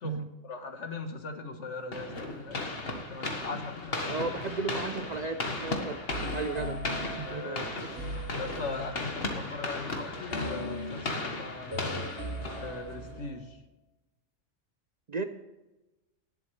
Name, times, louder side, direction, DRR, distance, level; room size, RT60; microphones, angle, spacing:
voice 1, 0.0-2.7 3.1-4.1 7.2-7.7 8.3-11.9 12.6-13.6, left 3 dB, 70° left, 6 dB, 1.6 m, -40 dB
sound 1, 1.9-13.2, left 2 dB, 50° left, 1.7 m, -36 dB
voice 2, 4.1-6.0 6.3-6.8 7.2-7.6 15.1-15.2, right 4 dB, 45° right, 8 dB, 0.6 m, -34 dB
sound 2, 6.1-9.1 10.3-13.6, equal, 60° right, 2.5 m, -39 dB
19.0 x 7.9 x 3.3 m, 1.1 s
omnidirectional pair, 1.3 m